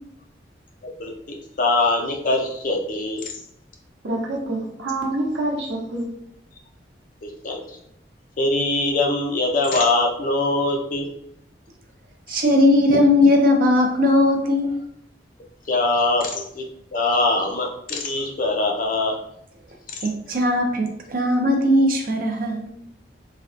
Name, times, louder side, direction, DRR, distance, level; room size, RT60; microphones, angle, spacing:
voice 1, 0.8-3.2 7.2-7.8 8.4-11.1 15.7-16.7 16.9-19.2, left 2 dB, 50° left, 1 dB, 0.5 m, -22 dB
voice 2, 4.0-6.1, right 2 dB, 85° right, -1 dB, 0.8 m, -26 dB
voice 3, 12.3-14.7 20.0-22.7, left 1 dB, 50° right, 2 dB, 0.5 m, -18 dB
3.4 x 2.2 x 2.4 m, 0.72 s
head